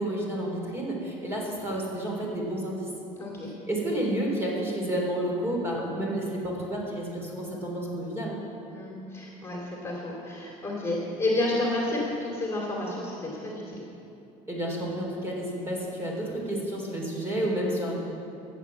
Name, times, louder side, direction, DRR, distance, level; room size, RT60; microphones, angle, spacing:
voice 1, 0.0-2.9 3.7-8.4 14.5-17.9, right 1 dB, 15° right, -2 dB, 3.6 m, -30 dB
voice 2, 3.2-3.5 8.7-13.8, left 2 dB, 20° left, -2 dB, 2.5 m, -30 dB
14.0 x 8.5 x 7.2 m, 2.7 s
cardioid pair, 125°, 15 cm